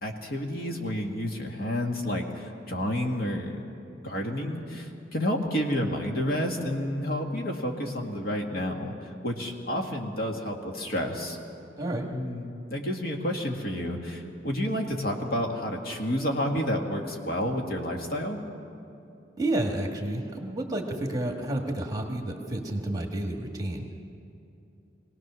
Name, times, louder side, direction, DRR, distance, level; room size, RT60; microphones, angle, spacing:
voice 1, 0.0-3.6 4.0-11.4 12.1-18.4, equal, 55° left, 1 dB, 1.9 m, -30 dB
voice 2, 11.8-12.1 19.4-23.9, right 1 dB, 20° right, 2 dB, 1.7 m, -30 dB
23.5 x 18.0 x 6.2 m, 2.7 s
head